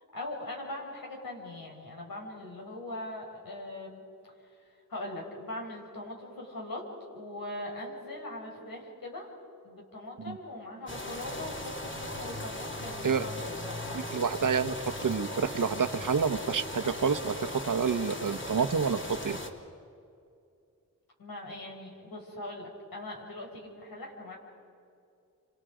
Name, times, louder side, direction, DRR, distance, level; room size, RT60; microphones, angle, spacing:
voice 1, 0.1-4.0 4.9-6.8 7.1-9.3 9.6-13.4 13.7-13.9 21.2-24.4, left 1 dB, 85° left, -1 dB, 5.4 m, -41 dB
sound 1, 10.9-19.5, left 1 dB, 35° left, 2.7 m, -38 dB
voice 2, 13.9-14.7 15.0-19.0 19.2-19.4, right 6 dB, 65° right, 8 dB, 1.2 m, -28 dB
29.5 x 27.0 x 5.1 m, 2.5 s
cardioid pair, 55°, 34 cm